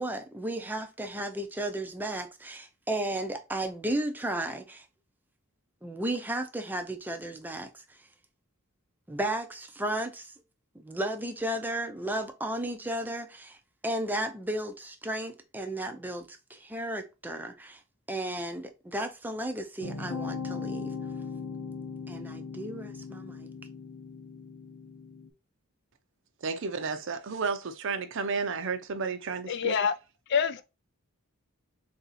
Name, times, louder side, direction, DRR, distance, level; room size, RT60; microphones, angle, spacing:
voice 1, 0.0-4.8 5.8-7.8 9.1-10.3 10.7-13.6 13.8-17.8 18.1-20.9 22.1-23.5, right 1 dB, 10° right, 0.5 m, -34 dB
sound 1, 19.8-25.3, left 5 dB, 85° left, 0.8 m, -38 dB
voice 2, 26.4-29.8, right 5 dB, 60° right, 0.6 m, -32 dB
voice 3, 29.5-29.9 30.3-30.6, left 7 dB, 55° left, 0.4 m, -26 dB
3.5 x 2.7 x 4.0 m
head